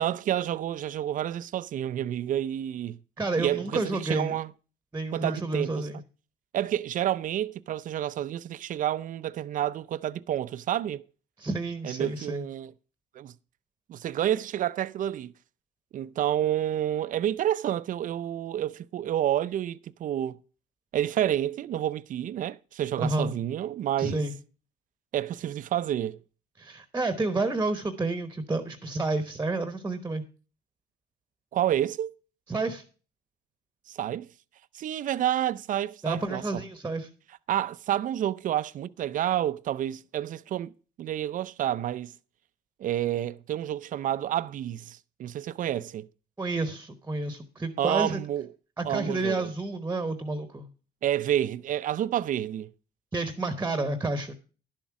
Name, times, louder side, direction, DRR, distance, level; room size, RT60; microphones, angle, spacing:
voice 1, 0.0-3.0 3.4-4.5 5.1-5.9 6.5-11.0 11.8-12.7 13.1-13.3 13.9-15.3 15.9-20.4 20.9-24.3 25.1-26.2 31.5-32.1 33.9-34.3 34.7-36.6 37.5-40.7 41.0-42.1 42.8-46.1 47.8-48.5 48.8-49.5 51.0-52.7, right 11 dB, 50° right, 0.5 m, -29 dB
voice 2, 3.2-4.4 4.9-6.0 11.4-12.4 23.0-23.3 24.0-24.3 26.6-30.2 32.5-32.8 36.0-37.1 46.4-48.2 48.8-50.7 53.1-54.3, right 2 dB, 15° right, 1.1 m, -30 dB
11.0 x 7.3 x 4.8 m
cardioid pair, 110°, 17 cm